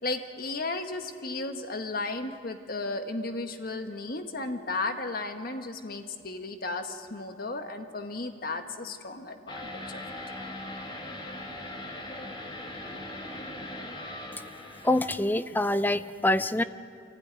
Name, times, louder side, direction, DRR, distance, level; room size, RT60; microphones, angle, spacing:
voice 1, 0.0-10.0, left 3 dB, 55° left, 6 dB, 1.4 m, -34 dB
sound 1, 9.5-15.1, left 1 dB, 25° left, 2.1 m, -40 dB
voice 2, 14.8-16.6, left 1 dB, 10° left, 13 dB, 0.6 m, -25 dB
24.5 x 16.0 x 9.6 m, 2.4 s
head